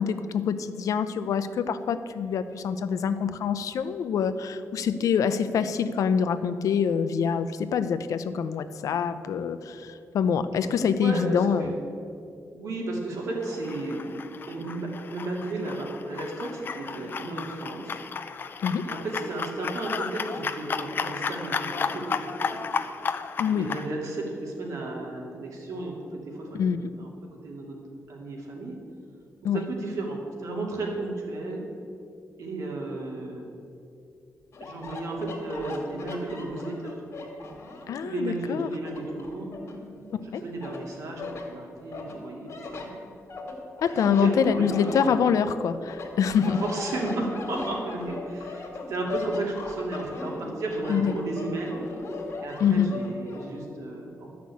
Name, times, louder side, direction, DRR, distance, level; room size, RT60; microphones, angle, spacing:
voice 1, 0.0-11.7 18.6-18.8 23.4-23.7 26.5-26.9 29.4-29.6 37.9-38.7 40.3-40.4 43.8-46.6 50.9-51.1 52.6-52.9, left 7 dB, 85° left, 11 dB, 0.6 m, -25 dB
voice 2, 10.9-11.7 12.5-14.2 14.5-18.0 18.8-22.6 23.5-26.6 27.0-27.8 28.1-28.8 29.5-31.6 32.4-33.5 34.6-37.0 38.0-39.5 40.2-43.1 44.0-45.2 46.4-51.8 52.4-54.3, right 2 dB, 75° right, -1 dB, 2.6 m, -33 dB
sound 1, 13.4-23.9, left 5 dB, 40° left, 0.5 m, -33 dB
sound 2, 34.5-38.0 38.4-40.2 40.6-41.5 41.9-45.5 45.9-53.5, left 3 dB, 55° left, 2.2 m, -38 dB
12.5 x 6.0 x 8.4 m, 2.6 s
wide cardioid pair, 175°, 6 cm